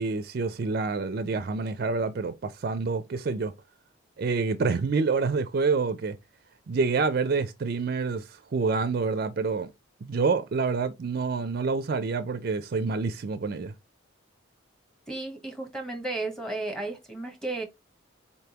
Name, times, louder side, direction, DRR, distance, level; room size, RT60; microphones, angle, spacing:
voice 1, 0.0-3.5 4.2-6.2 6.7-9.7 10.0-13.7, right 4 dB, 50° right, 0.4 m, -27 dB
voice 2, 15.1-17.6, right 2 dB, 5° left, 1.0 m, -33 dB
4.2 x 3.4 x 2.9 m
head